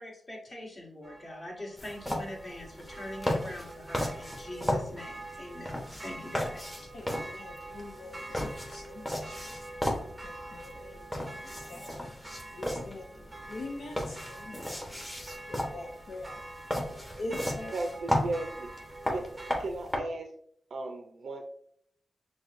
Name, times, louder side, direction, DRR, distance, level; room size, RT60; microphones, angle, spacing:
voice 1, 0.0-6.8, left 1 dB, 45° left, -3 dB, 1.6 m, -43 dB
sound 1, 1.0-19.6, right 2 dB, 25° right, 0.6 m, -46 dB
sound 2, 1.8-20.0, left 1 dB, 10° left, 1.0 m, -36 dB
voice 2, 6.9-17.8, left 2 dB, 75° left, -1 dB, 0.5 m, -45 dB
voice 3, 17.7-18.7 19.1-19.3 19.6-20.3 20.7-21.4, right 2 dB, 80° right, 4 dB, 0.5 m, -35 dB
5.9 x 2.2 x 2.5 m, 0.63 s
wide cardioid pair, 85°, 0 cm